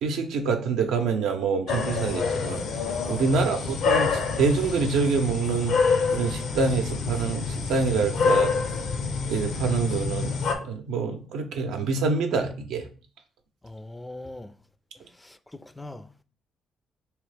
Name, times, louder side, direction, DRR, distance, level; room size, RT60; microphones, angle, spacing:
voice 1, 0.0-2.6 3.1-5.8 6.1-8.5 9.3-10.3 10.6-12.9, right 4 dB, 90° right, 0.6 m, -26 dB
sound 1, 1.7-10.5, left 5 dB, 75° left, 0.6 m, -27 dB
voice 2, 3.3-3.7 13.6-14.5 15.2-16.0, left 2 dB, 15° left, 0.3 m, -41 dB
3.7 x 3.0 x 3.3 m
cardioid pair, 90°, 0 cm